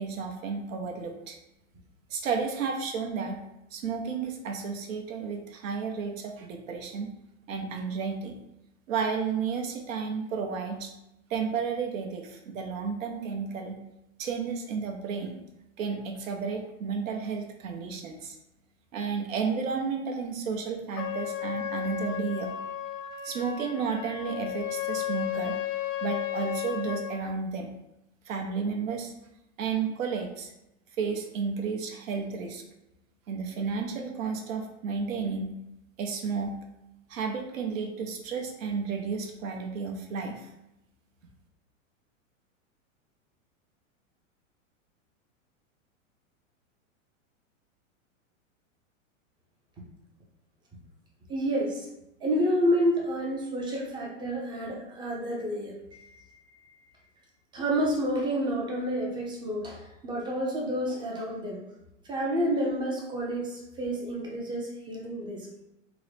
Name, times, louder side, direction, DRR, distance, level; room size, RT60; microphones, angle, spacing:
voice 1, 0.0-1.4 2.1-3.4 3.7-7.1 7.5-8.3 8.9-10.9 11.3-13.8 14.2-15.4 15.8-18.4 18.9-22.5 23.2-25.6 26.0-27.8 28.3-29.1 29.6-30.5 31.0-32.6 33.3-35.5 36.0-36.5 37.1-40.5, right 5 dB, 75° right, 2 dB, 0.8 m, -32 dB
Trumpet, 20.9-27.2, left 12 dB, 70° left, 0.6 m, -34 dB
voice 2, 51.3-51.9 52.2-56.9 57.5-61.6 62.0-65.5, equal, 10° right, -1 dB, 0.4 m, -29 dB
3.6 x 2.0 x 3.2 m, 0.89 s
hypercardioid pair, 130°, 40 cm